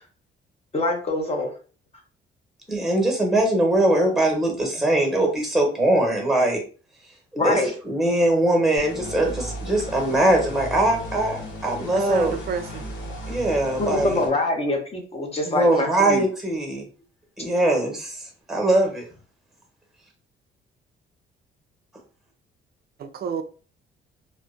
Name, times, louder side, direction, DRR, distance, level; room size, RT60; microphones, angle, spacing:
voice 1, 0.7-1.5 7.4-7.7 13.8-16.2, left 2 dB, 30° left, 0.6 m, -24 dB
voice 2, 2.7-6.6 7.3-12.3 13.3-14.2 15.4-16.9 17.4-18.2 18.5-19.1, right 1 dB, ahead, 0.9 m, -21 dB
sound 1, 8.8-14.3, equal, 75° left, 0.9 m, -35 dB
voice 3, 11.9-12.8 23.0-23.4, right 6 dB, 50° right, 0.4 m, -30 dB
2.4 x 2.0 x 2.4 m
cardioid pair, 90°, 20 cm